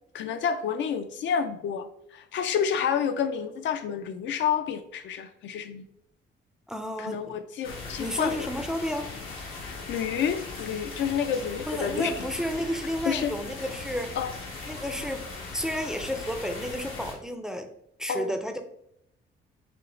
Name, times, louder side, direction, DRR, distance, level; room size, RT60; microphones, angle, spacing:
voice 1, 0.1-5.9 7.0-8.5 9.6-12.3 13.1-13.3 14.2-14.3 18.1-18.3, left 7 dB, 70° left, 9 dB, 0.4 m, -29 dB
voice 2, 6.7-7.4 8.0-9.1 11.7-14.2 14.7-15.3 15.5-17.7 18.0-18.6, equal, 5° right, 7 dB, 0.4 m, -31 dB
sound 1, 7.6-17.1, left 3 dB, 90° left, 1.1 m, -39 dB
5.0 x 2.1 x 3.1 m, 0.74 s
cardioid pair, 90°, 20 cm